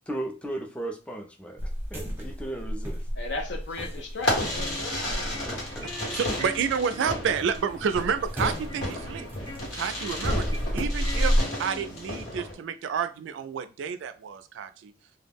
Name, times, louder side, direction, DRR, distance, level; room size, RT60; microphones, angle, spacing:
voice 1, 0.1-1.6 1.9-3.0 5.5-5.9, right 1 dB, 5° left, 3 dB, 0.3 m, -36 dB
sound 1, 1.6-6.7 7.0-11.4, equal, 10° right, 0.8 m, -31 dB
voice 2, 3.2-5.3, left 2 dB, 65° left, 3 dB, 0.6 m, -36 dB
Fireworks, 4.2-12.5, left 1 dB, 90° left, 1.2 m, -33 dB
sound 2, 4.3-12.3, left 1 dB, 25° left, 0.8 m, -43 dB
voice 3, 5.8-9.3 9.7-10.5 10.7-11.3 11.6-14.9, right 6 dB, 75° right, 10 dB, 0.3 m, -29 dB
2.2 x 2.0 x 3.4 m, 0.33 s
head